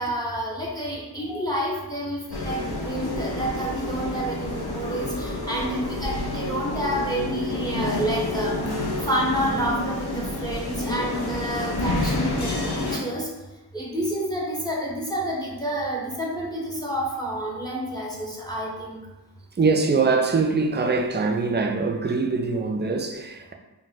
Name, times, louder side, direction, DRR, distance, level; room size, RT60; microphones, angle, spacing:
voice 1, 0.0-8.6 9.0-13.3 13.7-19.0, right 1 dB, 10° left, 0.7 m, -29 dB
sound 1, 2.3-13.0, left 2 dB, 60° left, 0.7 m, -29 dB
voice 2, 19.6-23.5, right 4 dB, 25° right, 0.3 m, -23 dB
2.4 x 2.2 x 3.9 m
cardioid pair, 45°, 43 cm